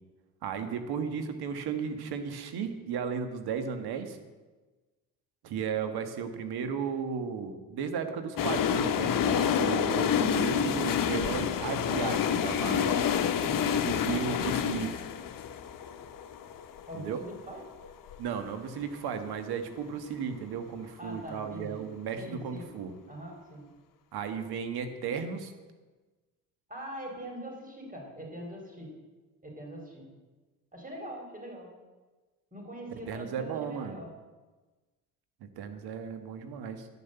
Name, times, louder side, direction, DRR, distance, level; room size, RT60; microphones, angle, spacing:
voice 1, 0.4-4.2 5.4-13.0 13.9-14.9 16.9-17.2 18.2-22.9 24.1-25.5 32.9-34.0 35.4-36.9, right 6 dB, 70° right, 8 dB, 1.5 m, -35 dB
sound 1, 8.4-18.2 18.5-18.6, left 8 dB, 55° left, 1.0 m, -28 dB
voice 2, 13.4-13.7 16.9-17.6 21.0-21.8 22.2-22.7 23.1-23.7 26.7-28.9 29.4-30.1 30.7-31.7 32.5-34.1, equal, 20° right, 0 dB, 4.7 m, -42 dB
11.0 x 6.9 x 8.0 m, 1.3 s
supercardioid pair, 65°, 39 cm